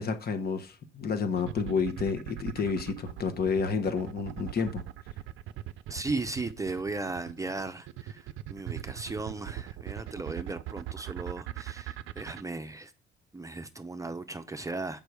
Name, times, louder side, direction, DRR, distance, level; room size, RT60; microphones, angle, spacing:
voice 1, 0.0-4.8, left 5 dB, 50° left, 1.1 m, -30 dB
sound 1, 1.4-12.4, right 14 dB, 85° right, 0.4 m, -40 dB
voice 2, 5.9-12.9 13.3-15.0, right 3 dB, 15° right, 0.6 m, -36 dB
6.7 x 5.4 x 4.7 m
cardioid pair, 90°, 20 cm